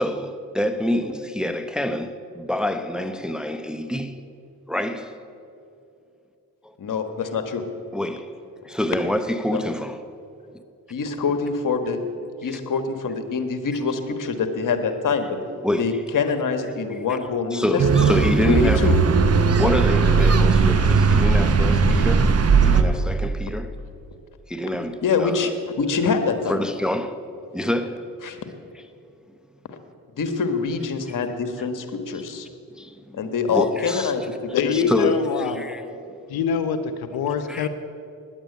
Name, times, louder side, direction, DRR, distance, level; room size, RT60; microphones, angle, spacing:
voice 1, 0.0-4.1 4.7-5.1 6.6-6.8 7.9-8.3 8.6-10.0 12.4-12.6 15.6-16.0 16.9-17.2 17.5-19.0 19.6-23.7 24.5-25.5 26.5-27.2 27.5-28.1 31.1-31.2 31.6-31.7 32.7-33.2 33.5-34.1 34.5-35.8 37.5-37.7, left 1 dB, ahead, 0.7 m, -27 dB
voice 2, 6.8-7.6 9.5-9.6 10.9-12.0 12.4-15.4 15.8-19.0 25.0-25.5 25.8-26.6 28.2-28.4 30.2-32.5 33.1-35.1, left 5 dB, 55° left, 1.4 m, -25 dB
sound 1, 17.8-22.8, right 5 dB, 40° right, 1.0 m, -17 dB
voice 3, 34.5-35.6 36.3-37.7, left 6 dB, 75° left, 0.8 m, -24 dB
10.0 x 8.9 x 9.3 m
supercardioid pair, 60°, 38 cm